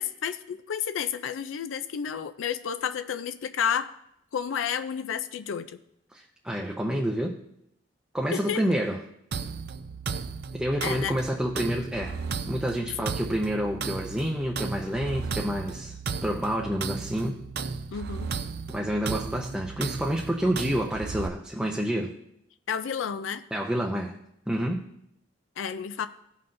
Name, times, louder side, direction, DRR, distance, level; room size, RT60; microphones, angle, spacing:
voice 1, 0.0-3.9 4.3-5.8 8.3-8.6 10.8-11.2 17.9-18.3 22.7-23.4 25.6-26.1, left 7 dB, 90° left, 11 dB, 0.4 m, -31 dB
voice 2, 6.1-7.4 8.1-9.0 10.5-12.2 12.5-17.4 18.7-22.1 23.5-24.1 24.5-24.9, equal, 5° right, 0 dB, 0.5 m, -28 dB
sound 1, 9.3-21.3, right 5 dB, 60° right, 0.5 m, -35 dB
16.0 x 5.7 x 2.6 m, 0.78 s
head